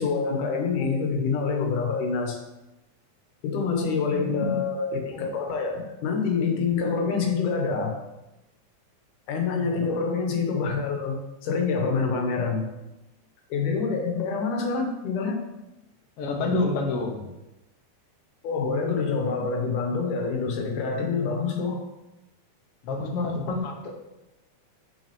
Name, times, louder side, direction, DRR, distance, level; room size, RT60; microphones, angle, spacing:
voice 1, 0.0-2.4 3.4-8.0 9.3-12.7 13.5-15.4 18.4-21.9, left 5 dB, 80° left, 4 dB, 2.5 m, -26 dB
voice 2, 3.8-4.6 9.6-9.8 16.2-17.3 22.8-24.0, left 2 dB, 60° left, 1 dB, 1.7 m, -28 dB
6.2 x 6.0 x 4.4 m, 0.95 s
omnidirectional pair, 3.6 m